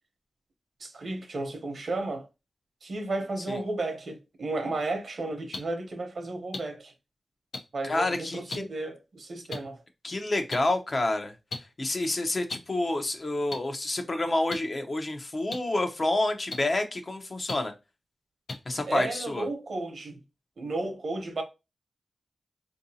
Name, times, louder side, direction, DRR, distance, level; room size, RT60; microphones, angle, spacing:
voice 1, 0.8-2.3 2.8-6.9 7.7-9.8 18.9-20.2 20.6-21.4, right 2 dB, 65° right, 0.8 m, -33 dB
sound 1, 5.5-5.6 6.5-6.6 7.5-7.6 8.5-8.6 9.5-9.6 10.5-10.6 11.5-11.6 12.5-12.6 13.5-13.6 14.5-14.6 15.5-15.6 16.5-16.6 17.5-17.6 18.5-18.6, left 3 dB, 85° left, 0.6 m, -33 dB
voice 2, 7.8-8.6 10.0-11.3 11.8-17.7 18.7-19.4, left 2 dB, 45° left, 0.6 m, -28 dB
3.7 x 2.6 x 2.7 m
cardioid pair, 65°, 0 cm